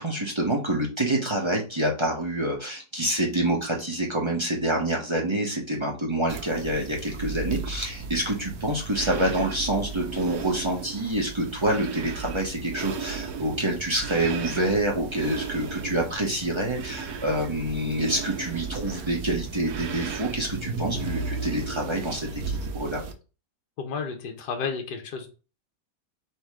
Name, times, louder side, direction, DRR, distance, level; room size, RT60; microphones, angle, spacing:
voice 1, 0.0-23.0, right 1 dB, 30° right, -1 dB, 0.5 m, -27 dB
sound 1, 6.3-23.1, right 5 dB, 65° right, 1.0 m, -35 dB
voice 2, 23.8-25.3, left 5 dB, 70° left, 3 dB, 1.5 m, -32 dB
3.9 x 2.9 x 4.6 m, 0.34 s
omnidirectional pair, 1.9 m